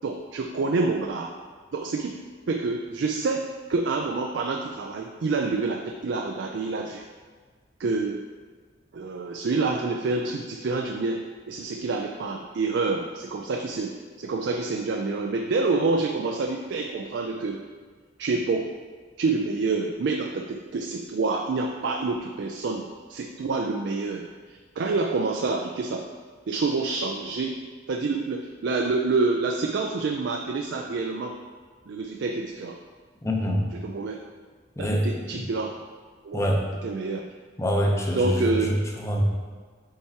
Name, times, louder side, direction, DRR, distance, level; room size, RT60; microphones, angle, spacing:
voice 1, 0.0-1.3 1.7-2.2 2.5-7.0 7.8-8.2 8.9-17.6 18.2-18.7 19.2-26.1 26.5-27.6 27.9-31.4 31.9-32.8 33.8-34.2 34.8-35.8 36.2-36.5 36.8-37.3 38.1-38.7, right 3 dB, 70° right, 2 dB, 0.4 m, -27 dB
voice 2, 33.2-33.8 34.8-35.5 36.3-36.7 37.6-39.2, equal, 15° left, 0 dB, 0.7 m, -25 dB
7.9 x 4.5 x 2.8 m, 1.5 s
head